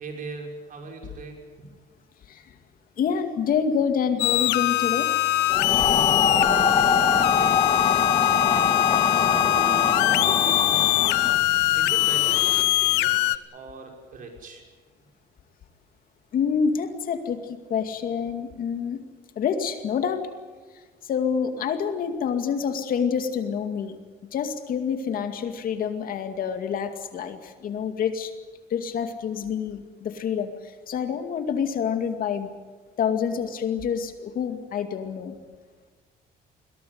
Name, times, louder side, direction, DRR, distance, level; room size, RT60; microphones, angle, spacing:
voice 1, 0.0-1.7 6.4-11.5 11.8-14.7, right 4 dB, 55° right, 2 dB, 5.9 m, -40 dB
voice 2, 3.0-5.1 16.3-19.0 19.4-20.2 21.1-24.0 24.3-28.3 28.7-30.5 30.9-32.5 33.0-35.3, left 7 dB, 55° left, 7 dB, 2.3 m, -27 dB
sound 1, 4.2-13.4, left 16 dB, 90° left, 0.8 m, -22 dB
sound 2, 5.5-12.6, left 5 dB, 35° left, 2.2 m, -24 dB
22.0 x 17.0 x 9.5 m, 1.4 s
cardioid pair, 110°, 17 cm